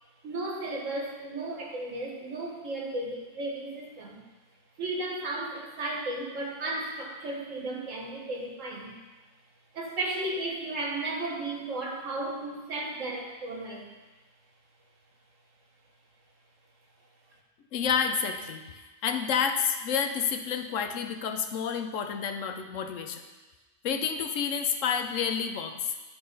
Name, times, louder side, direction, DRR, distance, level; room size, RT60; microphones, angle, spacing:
voice 1, 0.2-4.2 4.8-9.0 9.7-13.9, right 2 dB, 80° right, -1 dB, 1.8 m, -34 dB
voice 2, 17.7-18.6 19.0-23.2 23.8-25.8, left 7 dB, 75° left, 6 dB, 1.1 m, -29 dB
11.0 x 4.3 x 5.4 m, 1.2 s
omnidirectional pair, 1.3 m